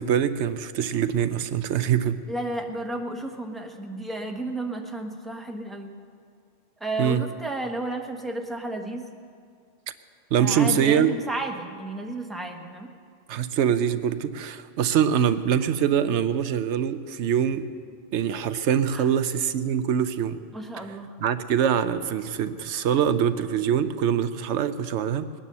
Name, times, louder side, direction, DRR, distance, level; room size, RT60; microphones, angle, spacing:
voice 1, 0.0-2.2 7.0-7.2 10.3-11.1 13.3-17.7 18.1-20.4 21.2-25.3, right 8 dB, 85° right, 12 dB, 0.9 m, -24 dB
voice 2, 2.3-5.9 6.8-9.1 10.3-12.9 18.9-19.1 20.5-21.2, right 2 dB, ahead, 2 dB, 1.0 m, -32 dB
20.0 x 9.9 x 6.8 m, 2.2 s
omnidirectional pair, 1.2 m